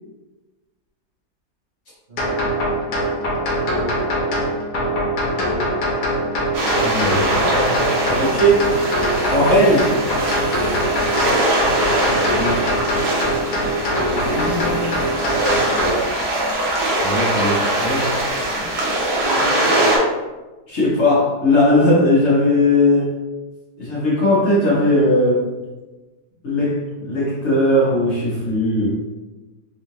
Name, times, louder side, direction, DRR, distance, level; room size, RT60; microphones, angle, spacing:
voice 1, 2.1-2.7 4.7-5.0 12.0-12.5 14.2-15.0 18.6-18.7 19.2-19.9, left 1 dB, 35° right, -10 dB, 0.9 m, -32 dB
sound 1, 2.2-15.9, equal, 70° left, 1.4 m, -22 dB
sound 2, 6.5-20.0, right 1 dB, 75° right, 1.4 m, -22 dB
voice 2, 6.8-7.7 8.1-8.7 9.3-9.9 12.4-12.7 17.0-18.1 20.7-23.1 23.8-25.4 26.4-28.9, left 1 dB, 50° left, -8 dB, 1.1 m, -18 dB
3.6 x 2.4 x 2.9 m, 1.2 s
omnidirectional pair, 1.8 m